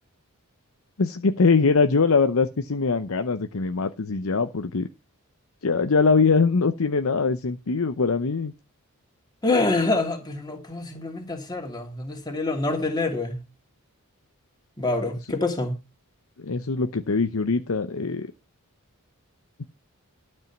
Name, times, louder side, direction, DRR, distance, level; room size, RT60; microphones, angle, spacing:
voice 1, 1.0-4.9 5.6-8.5 16.4-18.3, left 4 dB, 65° left, 0.7 m, -22 dB
voice 2, 9.4-13.4 14.8-15.8, left 2 dB, 20° left, 2.8 m, -26 dB
12.5 x 5.4 x 7.2 m
head